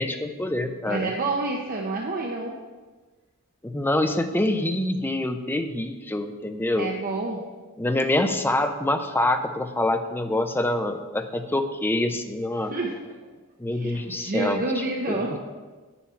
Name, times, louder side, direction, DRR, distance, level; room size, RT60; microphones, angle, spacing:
voice 1, 0.0-1.1 3.6-6.9 7.8-12.7 13.6-14.6 15.1-15.2, left 1 dB, 10° left, 7 dB, 0.5 m, -25 dB
voice 2, 0.9-2.6 6.8-7.4 12.7-13.3 13.7-15.4, right 2 dB, 40° right, -1 dB, 0.7 m, -29 dB
8.8 x 7.1 x 4.4 m, 1.3 s
head